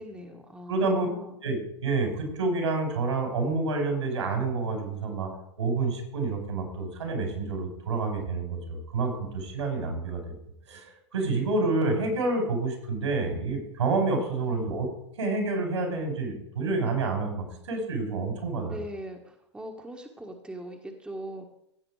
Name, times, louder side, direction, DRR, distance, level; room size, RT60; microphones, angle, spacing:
voice 1, 0.0-1.4 14.5-14.9 18.7-21.5, right 1 dB, 5° right, 2 dB, 1.6 m, -41 dB
voice 2, 0.7-1.1 1.4-5.3 5.6-10.4 10.7-14.9 15.2-18.8, right 3 dB, 80° right, 3 dB, 5.2 m, -28 dB
16.0 x 7.6 x 4.9 m, 0.76 s
hypercardioid pair, 105°, 15 cm